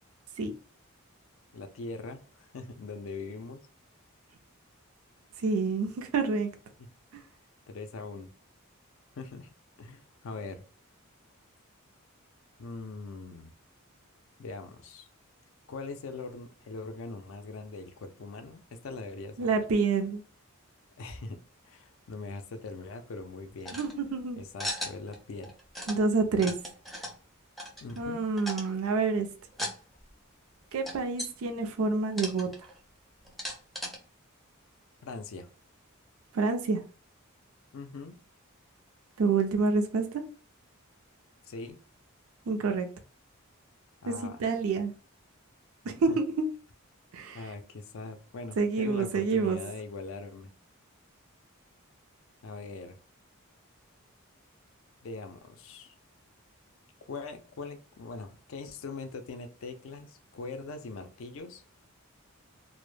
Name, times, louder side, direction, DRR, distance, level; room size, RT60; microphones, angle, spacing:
voice 1, 1.5-3.6 6.8-6.9 7.7-8.3 9.2-9.5 9.8-10.6 12.6-13.5 14.4-15.1 15.7-19.5 21.0-23.8 24.4-25.5 27.8-28.2 35.0-35.5 37.7-38.2 41.4-41.8 44.0-44.6 46.1-46.2 47.3-50.5 52.4-53.0 55.0-55.9 57.1-61.6, left 3 dB, 65° left, 0.4 m, -41 dB
voice 2, 5.4-6.5 19.4-20.2 23.7-24.4 25.9-26.5 28.0-29.3 30.7-32.7 36.3-36.8 39.2-40.2 42.5-42.9 44.1-44.2 44.4-44.9 45.9-46.5 47.1-47.4 48.6-49.6, right 4 dB, 75° right, 0.4 m, -28 dB
sound 1, 23.7-23.9 24.6-25.2 25.4-26.0 26.3-27.2 27.6-28.1 28.4-28.8 29.5-29.8 30.1-30.2 30.9-31.3 32.1-32.8 33.2-34.0, equal, ahead, 0.4 m, -37 dB
2.1 x 2.0 x 3.1 m
head